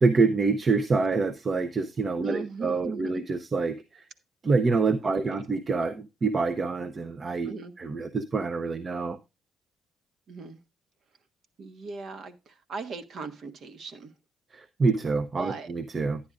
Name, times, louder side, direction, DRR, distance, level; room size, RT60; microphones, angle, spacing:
voice 1, 0.0-3.8 4.4-7.5 7.8-9.2 14.5-16.2, right 4 dB, 35° right, 0.7 m, -26 dB
voice 2, 2.2-3.2 5.0-5.4 7.4-7.7 10.3-10.6 11.6-14.1 15.4-15.7, right 4 dB, 60° right, 1.4 m, -39 dB
11.5 x 9.8 x 2.4 m
cardioid pair, 90°, 0 cm